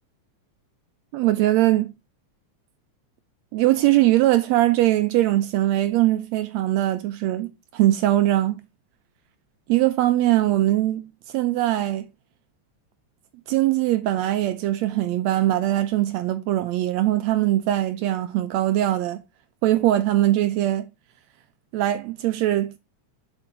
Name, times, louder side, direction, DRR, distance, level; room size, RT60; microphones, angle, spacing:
voice 1, 1.1-1.9 3.5-8.6 9.7-12.1 13.5-19.2 19.6-20.9 21.7-22.7, right 14 dB, 80° right, 1.7 m, -21 dB
7.5 x 4.5 x 3.8 m
omnidirectional pair, 3.4 m